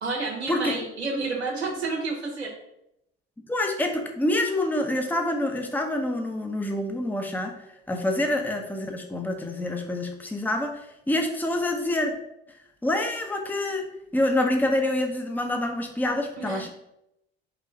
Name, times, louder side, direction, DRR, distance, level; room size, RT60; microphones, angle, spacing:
voice 1, 0.0-2.5 8.3-8.4 16.4-16.7, right 3 dB, 90° right, -1 dB, 1.2 m, -30 dB
voice 2, 3.5-7.6 7.9-12.2 12.8-13.9 14.1-16.7, left 1 dB, 5° left, 3 dB, 0.9 m, -26 dB
5.1 x 3.6 x 5.5 m, 0.81 s
figure-of-eight pair, 55°, 32 cm